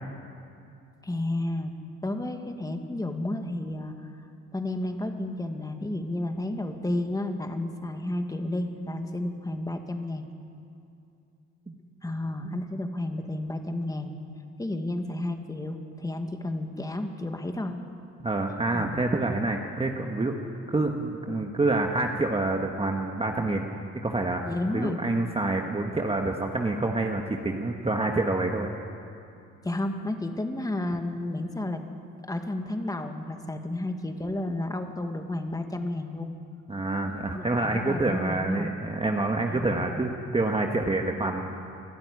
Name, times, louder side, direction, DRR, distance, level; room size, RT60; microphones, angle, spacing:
voice 1, 1.0-1.7 2.0-3.9 4.5-10.3 12.0-14.2 14.6-17.8 18.7-18.9 24.5-25.0 29.6-31.8 32.3-36.3 37.3-38.7 39.5-40.0, left 1 dB, 10° left, 5 dB, 1.9 m, -32 dB
voice 2, 18.2-20.4 20.7-23.6 24.0-24.4 24.7-28.7 36.7-41.5, right 2 dB, 20° right, 2 dB, 1.5 m, -27 dB
23.0 x 12.5 x 9.7 m, 2.6 s
cardioid pair, 90°, 30 cm